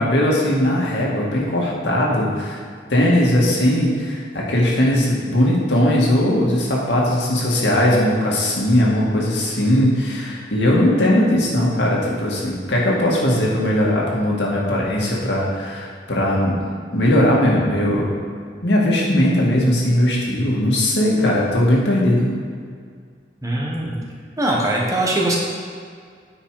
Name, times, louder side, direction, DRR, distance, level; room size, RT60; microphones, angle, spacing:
voice 1, 0.0-2.6 2.9-16.6 16.9-18.1 18.6-22.3, left 1 dB, 70° left, -4 dB, 2.0 m, -19 dB
voice 2, 23.4-24.0 24.4-25.4, right 1 dB, 20° right, -3 dB, 1.4 m, -21 dB
9.6 x 5.9 x 4.9 m, 2.1 s
head